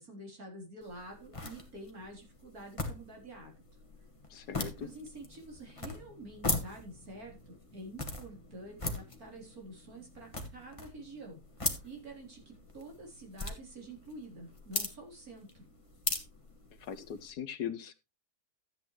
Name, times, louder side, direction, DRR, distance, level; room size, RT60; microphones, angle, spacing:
voice 1, 0.0-3.5 4.3-4.5 4.8-11.4 11.8-15.5, right 1 dB, 55° right, 1 dB, 4.3 m, -48 dB
sound 1, 0.8-17.3, left 2 dB, 20° left, 1.7 m, -41 dB
voice 2, 4.3-4.9 16.8-17.9, left 8 dB, 70° left, 12 dB, 1.4 m, -40 dB
13.5 x 8.8 x 3.1 m, 0.25 s
omnidirectional pair, 1.8 m